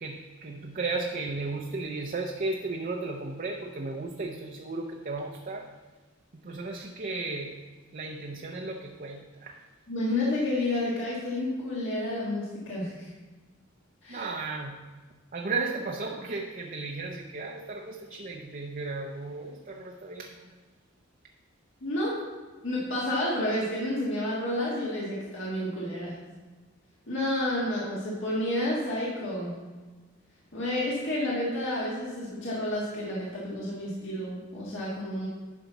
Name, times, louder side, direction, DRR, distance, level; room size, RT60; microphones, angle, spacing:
voice 1, 0.0-5.7 6.3-7.6 7.9-9.6 14.1-14.8 15.3-20.5, right 3 dB, 40° right, 1 dB, 0.6 m, -35 dB
voice 2, 9.9-13.1 14.0-14.3 21.8-22.2 22.6-26.1 27.1-29.5 30.5-35.3, left 1 dB, 65° left, -6 dB, 1.7 m, -30 dB
10.5 x 5.7 x 4.0 m, 1.4 s
head